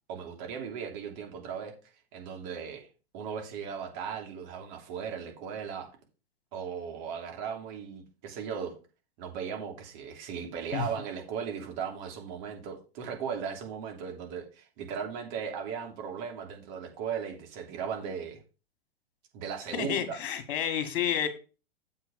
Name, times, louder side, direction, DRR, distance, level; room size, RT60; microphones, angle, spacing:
voice 1, 0.1-1.7 2.1-2.9 3.1-5.9 6.5-8.7 9.2-18.4 19.3-20.2, right 7 dB, 45° right, 2 dB, 3.1 m, -37 dB
voice 2, 19.7-21.3, left 9 dB, 55° left, 8 dB, 1.9 m, -30 dB
7.7 x 5.7 x 5.3 m, 0.34 s
figure-of-eight pair, 105°, 31 cm